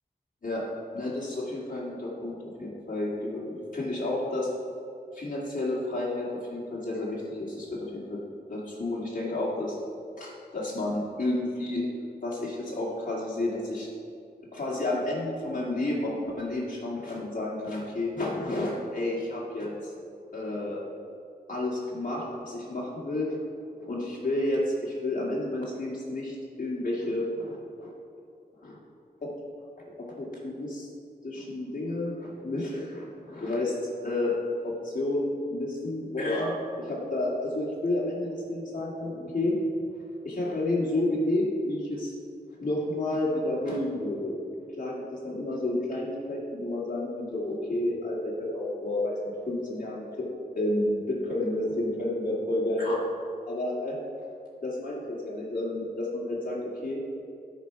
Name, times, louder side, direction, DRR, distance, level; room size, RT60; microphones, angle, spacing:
voice 1, 0.9-4.5 5.1-8.2 8.5-9.8 10.2-11.9 12.2-13.9 14.5-19.9 20.3-20.8 21.5-23.6 23.9-27.9 28.6-28.8 29.2-29.3 30.0-30.9 31.2-33.7 34.0-34.4 34.6-39.6 40.2-42.1 42.6-44.4 44.7-49.2 49.5-50.3 50.5-52.9 53.5-54.0 54.6-57.0, left 1 dB, 50° left, -6 dB, 2.1 m, -31 dB
13.0 x 4.6 x 5.9 m, 2.5 s
wide cardioid pair, 75°, 17 cm